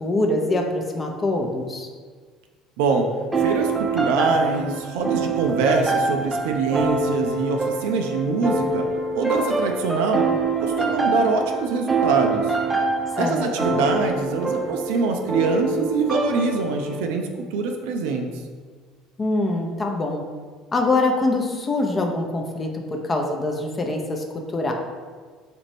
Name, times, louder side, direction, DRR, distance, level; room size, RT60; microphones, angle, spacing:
voice 1, 0.0-1.9 13.1-13.9 19.2-20.2 20.7-24.2 24.5-24.7, left 2 dB, 30° left, 2 dB, 0.5 m, -24 dB
voice 2, 2.8-3.1 3.4-8.9 9.1-10.2 10.6-12.6 13.2-18.3, right 4 dB, 75° right, 3 dB, 0.3 m, -24 dB
sound 1, 3.3-17.0, right 3 dB, 15° right, 0.5 m, -25 dB
4.2 x 2.5 x 3.2 m, 1.5 s
hypercardioid pair, 70°, 0 cm